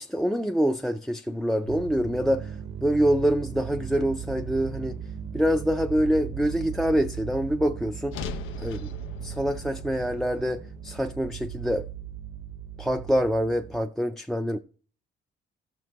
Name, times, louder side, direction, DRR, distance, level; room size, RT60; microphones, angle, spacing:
voice 1, 0.0-2.5 2.8-5.0 5.3-8.2 8.6-8.9 9.2-11.9 12.8-14.6, equal, ahead, 0.4 m, -25 dB
sound 1, 1.7-13.8, right 8 dB, 70° right, 0.7 m, -38 dB
sound 2, 8.1-12.4, left 7 dB, 90° left, 0.6 m, -41 dB
14.0 x 6.1 x 3.0 m
cardioid pair, 90°, 20 cm